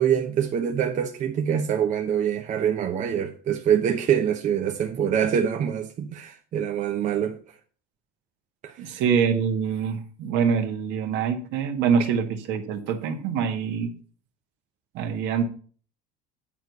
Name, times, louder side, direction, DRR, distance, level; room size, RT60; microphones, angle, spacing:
voice 1, 0.0-7.4 8.6-9.0, right 8 dB, 40° right, 0.9 m, -25 dB
voice 2, 8.8-13.9 14.9-15.4, right 6 dB, 60° right, 1.6 m, -25 dB
9.0 x 4.7 x 6.6 m
supercardioid pair, 115°, 20 cm